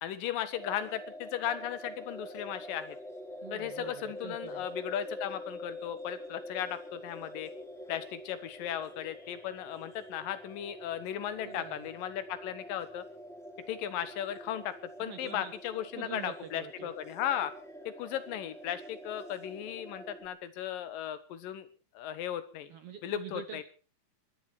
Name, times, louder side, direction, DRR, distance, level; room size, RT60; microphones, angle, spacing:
voice 1, 0.0-3.0 3.5-7.5 7.9-13.0 13.7-14.7 15.0-17.5 17.9-21.7 21.9-22.7 23.0-23.6, left 10 dB, 80° left, 13 dB, 2.8 m, -36 dB
sound 1, 0.5-20.3, left 1 dB, ahead, 1.9 m, -46 dB
voice 2, 3.4-4.7 11.4-11.9 15.0-15.5 15.9-16.9 22.7-23.6, right 8 dB, 65° right, 9 dB, 1.6 m, -45 dB
26.0 x 11.0 x 4.4 m, 0.36 s
omnidirectional pair, 3.9 m